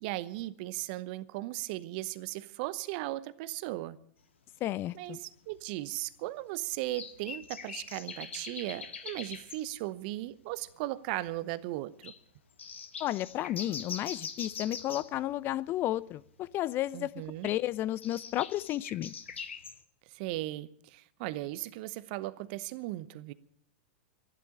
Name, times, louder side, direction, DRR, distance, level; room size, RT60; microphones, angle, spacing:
voice 1, 0.0-4.0 4.9-12.1 16.9-17.5 20.1-23.3, right 17 dB, 50° right, 0.9 m, -37 dB
voice 2, 4.6-5.2 13.0-17.1 17.4-19.1, left 14 dB, 35° left, 0.6 m, -32 dB
sound 1, 4.7-4.8 5.5-5.6 6.9-9.7 10.3-10.4 10.6-10.7 11.1-11.4 12.0-12.2 12.6-15.1 17.2-19.8, left 6 dB, 80° left, 1.7 m, -43 dB
14.0 x 12.0 x 8.5 m
hypercardioid pair, 100°, 6 cm